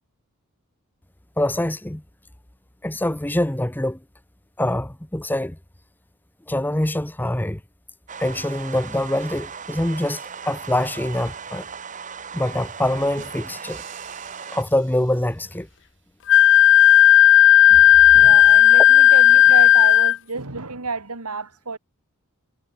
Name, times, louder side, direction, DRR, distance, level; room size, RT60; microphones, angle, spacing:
voice 1, 1.4-2.0 2.8-4.0 4.6-5.6 6.5-7.6 8.2-11.6 12.3-13.8 14.5-15.7, left 1 dB, 10° left, 0.8 m, -24 dB
sound 1, 8.1-14.6, right 6 dB, 35° right, 1.7 m, -37 dB
sound 2, 13.0-15.8, right 6 dB, 55° right, 7.2 m, -48 dB
Wind instrument woodwind instrument, 16.3-20.2, left 11 dB, 55° left, 0.5 m, -12 dB
voice 2, 18.1-21.8, right 4 dB, 90° right, 2.5 m, -30 dB
head